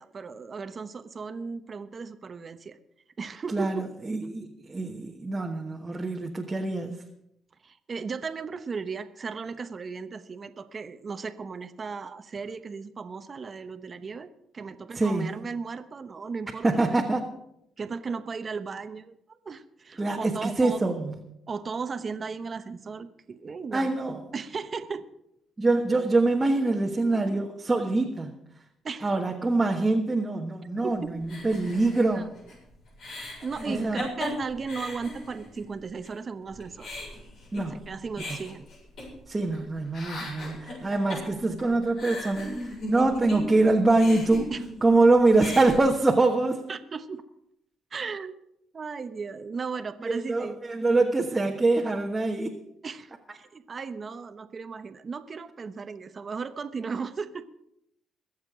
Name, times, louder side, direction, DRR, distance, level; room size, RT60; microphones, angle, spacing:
voice 1, 0.0-2.8 3.2-3.8 7.6-14.3 14.5-17.0 17.8-20.8 21.5-23.9 24.3-25.1 28.8-29.2 30.8-30.9 32.1-32.2 33.4-36.9 37.7-38.7 44.5-44.6 46.7-47.2 47.9-48.3 48.7-50.6 52.8-57.4, right 5 dB, 40° right, 9 dB, 0.9 m, -36 dB
voice 2, 3.5-7.0 14.9-15.3 16.6-17.4 20.0-21.2 23.7-24.2 25.6-28.3 29.0-32.3 33.7-34.0 37.5-37.8 38.3-38.4 39.3-44.5 44.8-46.6 50.0-52.6, right 2 dB, 20° right, 1 dB, 1.3 m, -24 dB
sound 1, 31.3-35.7 36.0-36.1 36.5-39.6 39.8-43.6 43.9-45.0 45.3-45.8, left 1 dB, 65° left, 7.2 m, -37 dB
22.0 x 7.4 x 5.0 m, 0.79 s
cardioid pair, 90°, 0 cm